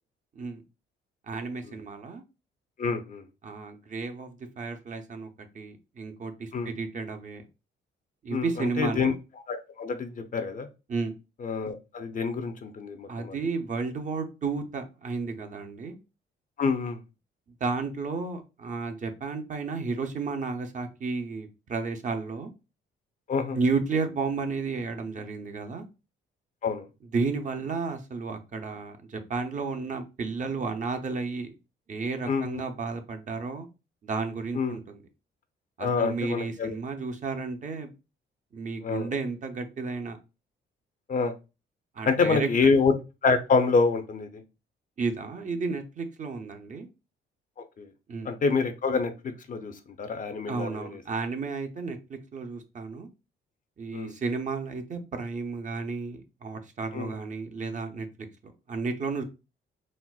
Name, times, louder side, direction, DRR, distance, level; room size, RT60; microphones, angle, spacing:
voice 1, 1.2-2.2 3.4-7.5 8.2-9.1 10.9-11.1 13.1-16.0 17.6-22.5 23.5-25.9 27.1-31.5 31.9-33.7 34.0-35.0 35.8-37.9 38.5-40.2 41.9-42.5 45.0-46.9 48.1-48.3 50.5-53.1 53.8-58.1 58.4-59.2, right 4 dB, 40° right, 6 dB, 0.6 m, -32 dB
voice 2, 2.8-3.2 6.5-6.7 8.3-9.1 9.5-10.7 11.4-13.4 16.6-17.0 23.3-23.6 26.6-26.9 32.3-32.6 34.5-34.8 35.8-36.8 38.8-39.1 41.1-41.3 42.1-42.9 43.2-44.4 47.8-47.9 48.2-51.0 53.9-54.2 56.9-57.1, left 4 dB, 40° left, 8 dB, 0.5 m, -27 dB
4.1 x 2.0 x 2.3 m, 0.28 s
cardioid pair, 90°, 20 cm